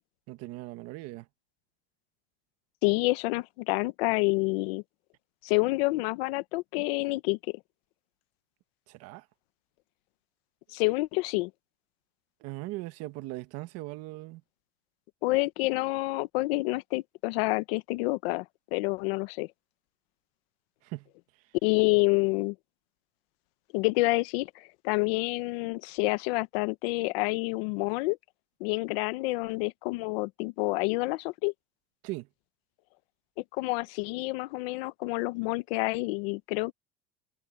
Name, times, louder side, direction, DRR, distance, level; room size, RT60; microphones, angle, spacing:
voice 1, 0.3-1.3 8.9-9.2 12.4-14.4 20.8-21.1 32.0-32.3, right 19 dB, 55° right, 1.5 m, -39 dB
voice 2, 2.8-4.8 5.4-7.4 10.7-11.5 15.2-18.4 18.7-19.5 21.6-22.5 23.7-28.2 28.6-31.5 33.5-36.7, left 24 dB, 80° left, 0.9 m, -28 dB
cardioid pair, 160°, 30 cm